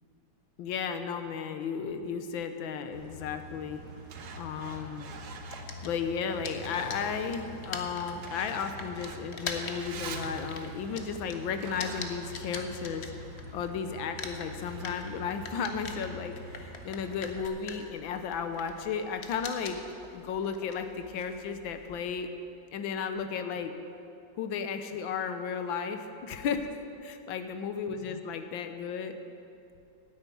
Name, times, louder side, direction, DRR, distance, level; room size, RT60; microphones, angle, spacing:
voice 1, 0.6-3.8 4.4-5.1 5.8-13.1 13.5-19.8 20.1-22.3 22.7-23.7 24.4-26.7 27.0-29.2, left 6 dB, 80° left, 8 dB, 1.6 m, -34 dB
Truck, 2.9-17.5, right 2 dB, 60° right, 1.3 m, -43 dB
sound 1, 5.5-13.7 14.0-22.2, left 5 dB, 45° left, 0.9 m, -43 dB
10.5 x 9.1 x 8.5 m, 2.7 s
omnidirectional pair, 2.2 m